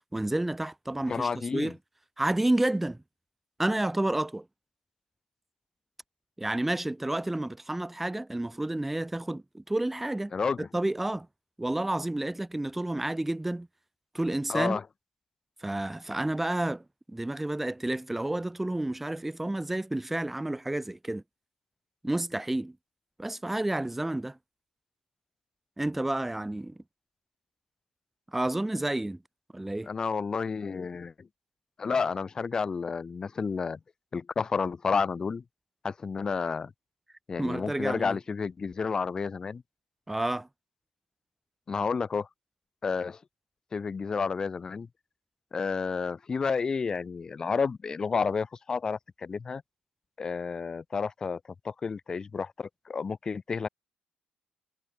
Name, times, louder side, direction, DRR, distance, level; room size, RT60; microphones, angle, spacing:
voice 1, 0.1-1.8 2.2-3.0 3.6-4.5 6.4-10.3 10.6-11.3 11.6-13.7 14.1-14.8 15.6-21.2 22.0-22.8 23.2-24.4 25.8-26.8 28.3-29.2 29.5-29.9 37.4-38.2 40.1-40.5, right 1 dB, 10° right, 0.8 m, -30 dB
voice 2, 1.1-1.7 10.3-10.7 14.5-14.8 29.9-31.3 31.8-33.8 34.1-35.4 35.8-36.7 37.3-39.6 41.7-42.3 42.8-43.2 43.7-44.9 45.5-49.6 50.2-51.4 51.6-53.7, left 5 dB, 30° left, 0.5 m, -30 dB
cardioid pair, 140°, 2 cm